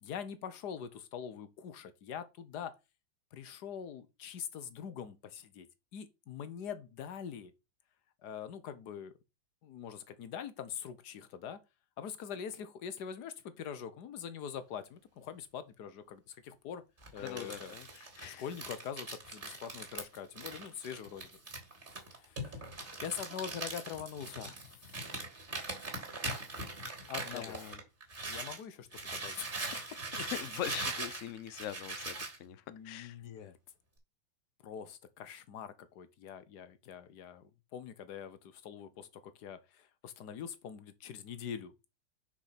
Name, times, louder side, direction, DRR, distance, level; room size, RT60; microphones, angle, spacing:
voice 1, 0.0-2.7 3.3-5.7 5.9-7.5 8.2-9.1 9.6-11.6 12.0-16.8 17.1-17.8 18.2-21.3 22.2-22.6 23.0-24.6 27.1-27.6 28.3-30.0 32.7-33.6 34.6-41.7, left 8 dB, 60° left, 1.3 m, -44 dB
Crumpling crinkling, 17.0-28.6 28.9-32.4, right 2 dB, 25° right, 3.2 m, -41 dB
voice 2, 17.2-18.4 27.3-27.8 30.2-32.1 32.4-32.6 32.8-33.1, left 11 dB, 80° left, 0.6 m, -42 dB
6.4 x 5.0 x 5.8 m
omnidirectional pair, 2.2 m